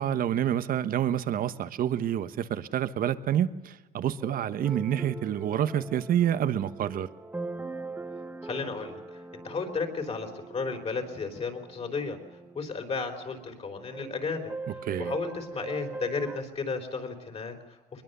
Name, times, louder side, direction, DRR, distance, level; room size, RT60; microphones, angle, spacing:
voice 1, 0.0-7.1 14.7-15.1, right 10 dB, 55° right, 12 dB, 1.1 m, -28 dB
sound 1, 4.2-16.4, right 3 dB, 10° right, 1.4 m, -41 dB
voice 2, 8.4-12.2 12.5-14.5 15.0-18.0, left 4 dB, 40° left, 5 dB, 4.2 m, -34 dB
22.5 x 21.0 x 6.8 m, 1.2 s
cardioid pair, 110°, 17 cm